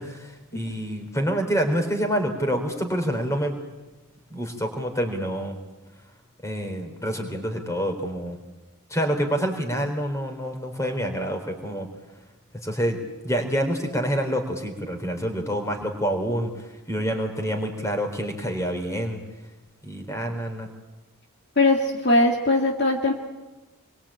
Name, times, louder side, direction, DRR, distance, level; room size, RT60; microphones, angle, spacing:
voice 1, 0.0-3.6 4.3-5.6 6.4-8.4 8.9-11.9 12.6-13.0 13.2-19.2 19.8-20.7, equal, 15° left, 4 dB, 4.0 m, -27 dB
voice 2, 21.6-23.1, left 2 dB, 50° left, 2 dB, 2.0 m, -20 dB
27.5 x 23.0 x 8.8 m, 1.1 s
head